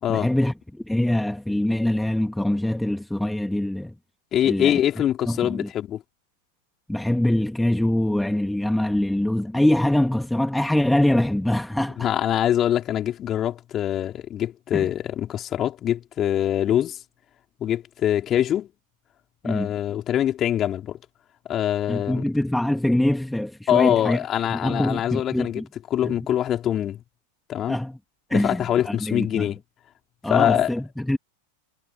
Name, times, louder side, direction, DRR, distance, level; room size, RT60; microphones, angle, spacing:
voice 1, 0.1-3.9 4.5-4.8 5.3-5.7 6.9-12.1 14.7-14.9 19.4-19.7 21.9-24.2 24.5-25.7 26.0-26.1 27.7-28.0 28.3-29.5 30.2-31.2, left 1 dB, 5° left, 2.7 m, -24 dB
voice 2, 4.3-6.0 12.0-17.0 17.6-18.7 19.4-21.0 21.5-22.2 23.7-25.6 25.9-27.0 27.5-27.8 28.3-29.6 30.3-30.7, left 11 dB, 30° left, 5.3 m, -24 dB
figure-of-eight pair, 90°, 0 cm